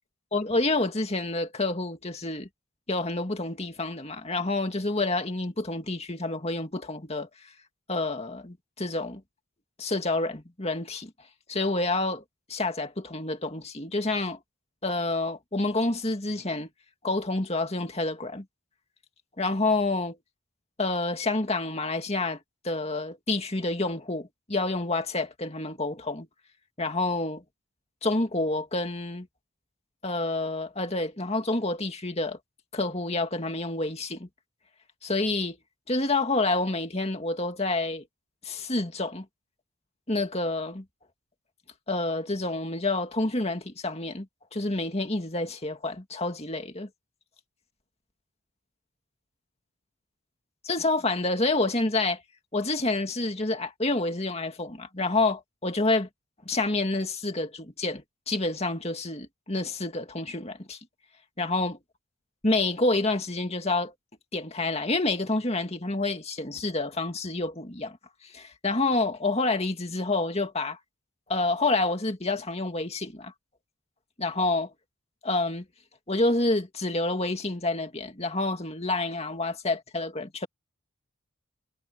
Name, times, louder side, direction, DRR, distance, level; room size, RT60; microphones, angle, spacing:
voice 1, 0.3-2.5 2.9-7.3 7.9-9.2 9.8-11.1 11.5-12.2 12.5-14.4 14.8-16.7 17.0-18.4 19.4-20.2 20.8-22.4 22.6-26.3 26.8-27.4 28.0-29.3 30.0-32.4 32.7-34.3 35.0-35.6 35.9-38.1 38.4-39.3 40.1-40.8 41.9-44.3 44.5-46.9 50.6-52.2 52.5-56.1 56.5-60.8 61.4-61.8 62.4-63.9 64.3-68.0 68.2-70.8 71.3-73.3 74.2-74.7 75.2-75.6 76.1-80.5, left 2 dB, 30° left, 2.2 m, -28 dB
head